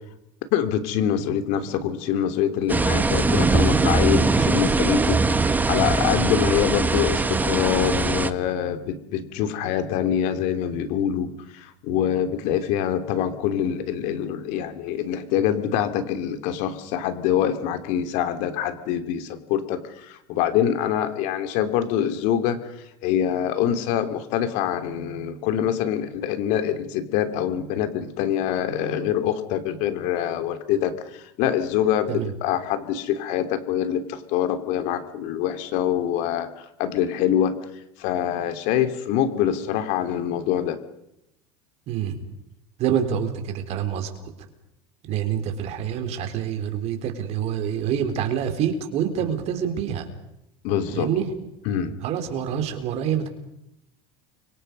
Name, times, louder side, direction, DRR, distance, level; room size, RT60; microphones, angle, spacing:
voice 1, 0.5-5.2 5.7-22.7 23.0-37.6 38.0-40.8 50.6-51.1 51.6-51.9, left 10 dB, 65° left, 8 dB, 2.9 m, -25 dB
sound 1, 2.7-8.3, right 3 dB, 10° right, 1.4 m, -21 dB
voice 2, 41.9-42.2 42.8-44.3 45.1-50.0 50.9-51.3 52.0-53.3, right 9 dB, 50° right, 7 dB, 4.2 m, -26 dB
30.0 x 24.5 x 5.4 m, 0.83 s
supercardioid pair, 110°, 14 cm